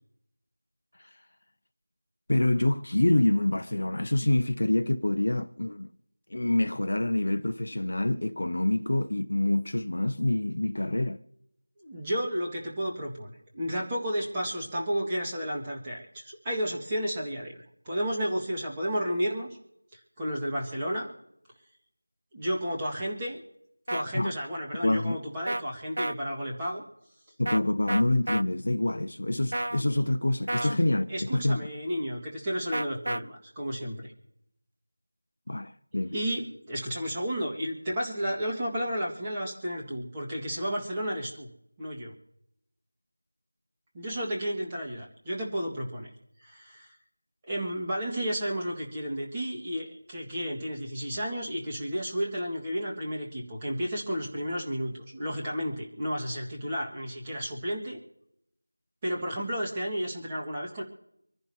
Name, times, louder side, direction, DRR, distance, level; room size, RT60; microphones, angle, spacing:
voice 1, 2.3-5.9 6.3-11.2 24.1-24.3 24.8-25.2 27.4-31.6 35.5-36.1, left 1 dB, 50° left, 0.9 m, -26 dB
voice 2, 11.8-17.6 17.8-19.5 19.9-21.1 22.3-23.4 23.9-26.8 30.6-30.7 31.1-34.1 35.9-41.5 41.8-42.1 43.9-46.1 46.4-47.0 47.4-58.0 59.0-60.8, equal, 10° right, 1.8 m, -32 dB
sound 1, 23.9-24.0 25.5-25.6 26.0-26.1 27.5-27.6 27.9-28.4 29.5-29.8 30.5-30.8 32.7-33.2, right 1 dB, 60° right, 0.5 m, -30 dB
26.0 x 11.0 x 2.9 m
figure-of-eight pair, 175°, 0 cm